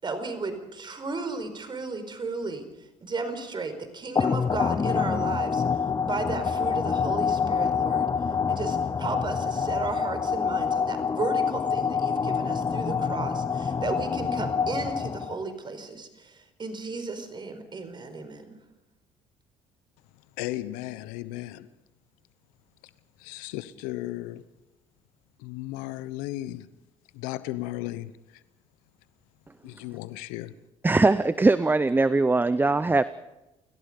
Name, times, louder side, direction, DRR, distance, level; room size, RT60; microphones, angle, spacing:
voice 1, 0.0-2.7 3.0-5.6 6.0-8.1 8.5-18.6, right 3 dB, 35° right, 4.7 m, -34 dB
sound 1, 4.2-15.5, left 6 dB, 25° left, 0.7 m, -26 dB
voice 2, 20.4-21.7 23.2-24.5 25.4-26.7 27.1-28.4 29.6-30.5, left 16 dB, 80° left, 0.9 m, -35 dB
voice 3, 30.8-33.0, right 3 dB, 15° right, 0.7 m, -21 dB
29.5 x 17.5 x 5.3 m
hypercardioid pair, 70°, 14 cm